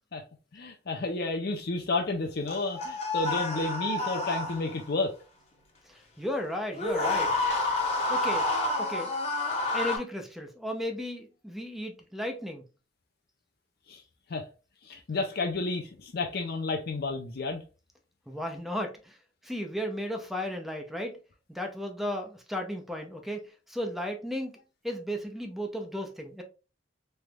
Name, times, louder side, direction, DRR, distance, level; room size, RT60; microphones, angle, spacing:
voice 1, 0.5-5.1 13.9-14.0 14.3-14.4 14.9-17.6, left 3 dB, 60° left, 0.5 m, -31 dB
sound 1, 2.5-4.9 6.7-10.0, left 2 dB, 35° left, 0.9 m, -29 dB
voice 2, 5.9-7.4 8.1-8.5 8.8-9.1 9.5-12.6 18.3-19.2 19.4-21.2 21.5-24.5 24.8-26.4, equal, ahead, 0.6 m, -35 dB
3.3 x 3.1 x 2.3 m
head